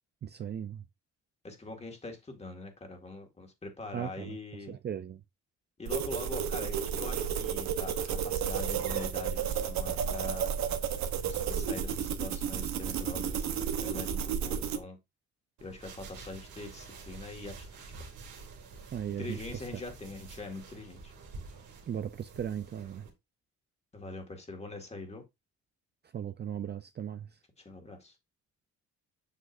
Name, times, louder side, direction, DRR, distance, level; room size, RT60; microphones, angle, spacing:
voice 1, 0.2-0.8 3.9-4.4 4.7-5.2 18.9-19.6 21.9-23.1 26.1-27.4, right 9 dB, 35° right, 0.5 m, -37 dB
voice 2, 1.4-4.8 5.8-10.5 11.2-13.5 13.8-15.0 15.6-17.7 19.2-21.1 23.9-25.2 27.6-28.2, left 3 dB, 20° left, 2.0 m, -43 dB
sound 1, 5.9-14.8, right 8 dB, 70° right, 1.0 m, -32 dB
sound 2, 15.6-23.1, right 4 dB, 85° right, 2.4 m, -48 dB
7.4 x 6.3 x 2.6 m
cardioid pair, 120°, 29 cm